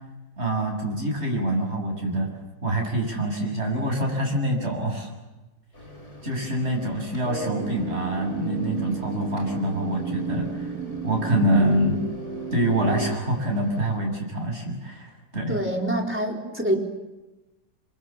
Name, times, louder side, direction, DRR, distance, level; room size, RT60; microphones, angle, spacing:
voice 1, 0.4-2.3 2.6-5.1 6.2-10.6 11.0-12.0 12.5-15.6, right 1 dB, 35° right, 0 dB, 7.6 m, -25 dB
Microwave oven, 5.7-14.0, left 1 dB, 40° left, 6.2 m, -46 dB
sound 1, 7.2-13.2, right 4 dB, 55° right, 2.3 m, -32 dB
voice 2, 15.5-16.8, right 1 dB, 5° right, 1 dB, 4.2 m, -25 dB
29.0 x 27.0 x 7.4 m, 1.1 s
omnidirectional pair, 2.0 m